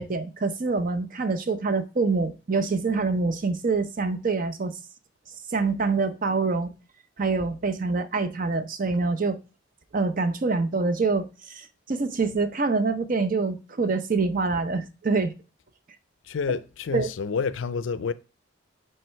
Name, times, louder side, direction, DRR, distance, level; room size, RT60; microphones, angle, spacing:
voice 1, 0.0-4.8 5.5-6.7 7.2-9.4 9.9-15.3 16.9-17.1, right 4 dB, 45° right, 0.5 m, -25 dB
voice 2, 16.2-18.1, left 5 dB, 70° left, 0.4 m, -28 dB
8.9 x 3.3 x 3.2 m
head